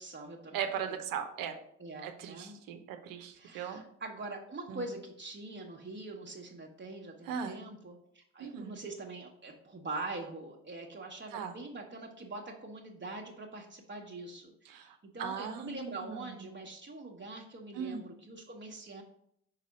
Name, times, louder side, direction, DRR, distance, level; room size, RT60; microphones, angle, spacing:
voice 1, 0.0-0.6 0.9-1.0 1.8-2.6 3.3-19.0, right 2 dB, 30° right, 0 dB, 1.2 m, -43 dB
voice 2, 0.5-1.5 2.0-3.8 4.7-4.9 7.3-7.6 8.4-8.7 11.3-11.6 14.7-16.5 17.7-18.1, right 7 dB, 70° right, 6 dB, 0.9 m, -39 dB
5.8 x 4.0 x 5.2 m, 0.70 s
hypercardioid pair, 50°, 35 cm